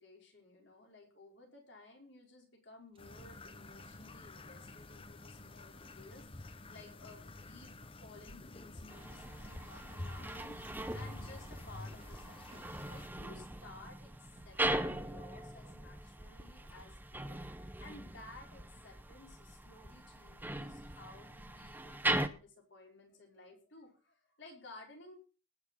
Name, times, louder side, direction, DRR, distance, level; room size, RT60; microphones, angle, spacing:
voice 1, 0.0-25.1, left 2 dB, 60° left, 1 dB, 5.3 m, -56 dB
sound 1, 2.8-3.1 4.6-4.8 5.7-6.0 6.4-6.6 6.9-7.1 7.4-7.5 8.2-9.2 10.3-10.7 11.4-13.2 14.1-14.7 15.0-15.7 16.2-17.1 17.8-18.4 18.7-19.2 19.5-20.1 20.4-21.2, right 1 dB, 25° right, 1.9 m, -66 dB
sound 2, 3.0-13.1, left 2 dB, 25° left, 0.8 m, -49 dB
sound 3, 8.9-22.3, right 1 dB, 10° right, 0.8 m, -40 dB
19.5 x 7.0 x 5.4 m, 0.34 s
head